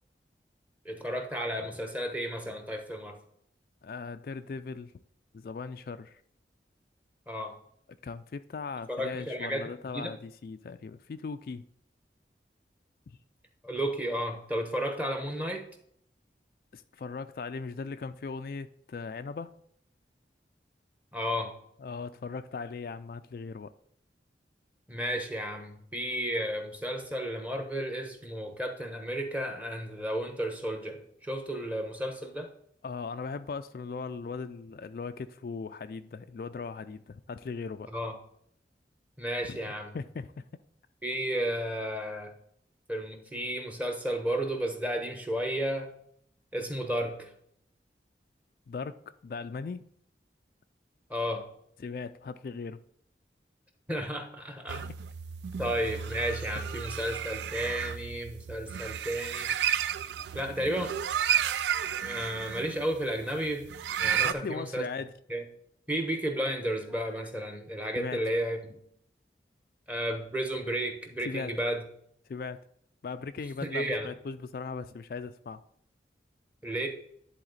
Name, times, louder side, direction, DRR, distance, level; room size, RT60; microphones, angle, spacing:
voice 1, 0.8-3.2 7.3-7.5 8.9-10.1 13.6-15.6 21.1-21.5 24.9-32.5 37.9-38.1 39.2-39.9 41.0-42.3 42.9-45.9 46.5-47.3 51.1-51.5 53.9-54.9 55.6-59.5 60.3-60.9 62.0-63.6 64.0-64.9 65.3-65.4 65.9-68.8 69.9-71.8 73.6-74.1 76.6-76.9, right 1 dB, 10° right, 1.0 m, -33 dB
voice 2, 3.8-4.9 5.3-6.2 8.0-11.7 13.1-13.2 16.7-19.5 21.8-23.7 32.8-37.9 39.5-40.4 48.7-49.9 51.8-52.8 64.2-65.1 68.0-68.2 71.2-71.5 72.3-72.6 73.0-75.6, left 4 dB, 55° left, 0.3 m, -38 dB
sound 1, 54.7-64.3, right 8 dB, 80° right, 0.3 m, -32 dB
10.5 x 4.1 x 4.0 m
head